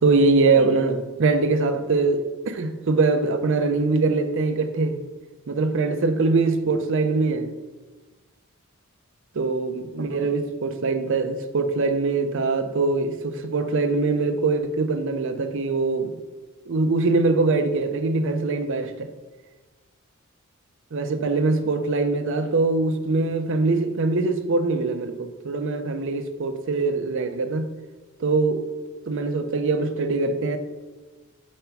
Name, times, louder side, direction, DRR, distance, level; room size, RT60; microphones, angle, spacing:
voice 1, 0.0-5.0 5.5-7.5 9.4-16.2 16.7-19.1 20.9-27.7 28.2-28.6 29.1-30.6, right 3 dB, 60° right, 8 dB, 0.5 m, -23 dB
5.4 x 3.4 x 5.7 m, 1.2 s
head